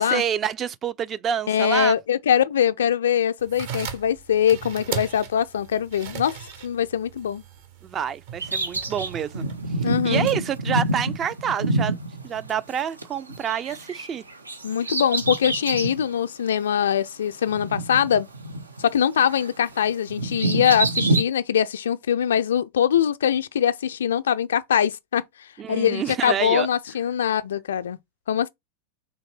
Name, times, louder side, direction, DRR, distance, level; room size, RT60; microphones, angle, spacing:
voice 1, 0.1-2.0 7.8-9.4 10.0-12.0 12.2-14.2 25.6-26.7, right 8 dB, 25° right, 0.4 m, -27 dB
voice 2, 1.5-7.4 9.8-10.3 14.6-18.3 18.8-25.2 25.7-28.0 28.3-28.5, left 9 dB, 65° left, 0.4 m, -22 dB
sound 1, 3.4-10.2, right 8 dB, 50° right, 0.9 m, -38 dB
Bird vocalization bird call bird song, 8.4-13.0 13.3-16.0 16.5-16.6 17.5-18.9 19.2-21.2, right 2 dB, 80° right, 0.6 m, -27 dB
4.0 x 3.2 x 4.2 m
figure-of-eight pair, 90°, 0 cm